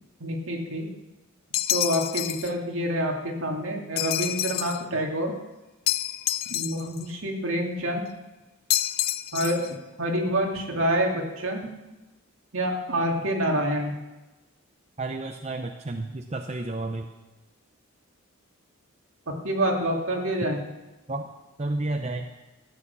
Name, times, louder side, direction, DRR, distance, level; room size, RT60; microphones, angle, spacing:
voice 1, 0.2-0.9 1.7-5.3 6.5-8.0 9.3-9.6 10.0-11.7 12.5-13.9 19.4-20.6, equal, 65° right, 1 dB, 2.4 m, -27 dB
sound 1, 1.5-2.5 4.0-4.8 5.9-7.0 8.7-9.7, left 13 dB, 45° left, 0.4 m, -28 dB
voice 2, 15.0-17.1 21.1-21.3 21.6-22.3, right 2 dB, 30° right, 4 dB, 0.6 m, -31 dB
14.5 x 8.8 x 6.9 m, 1.1 s
head